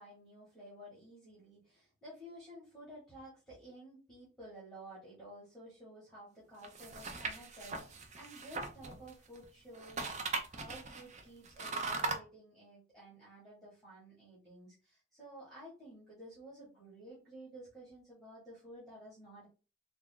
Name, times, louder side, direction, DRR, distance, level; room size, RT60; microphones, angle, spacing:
voice 1, 0.0-19.5, right 1 dB, ahead, -9 dB, 1.4 m, -53 dB
sound 1, 6.6-9.4 9.7-12.2, right 3 dB, 35° right, 0.5 m, -39 dB
3.4 x 2.4 x 3.7 m, 0.34 s
head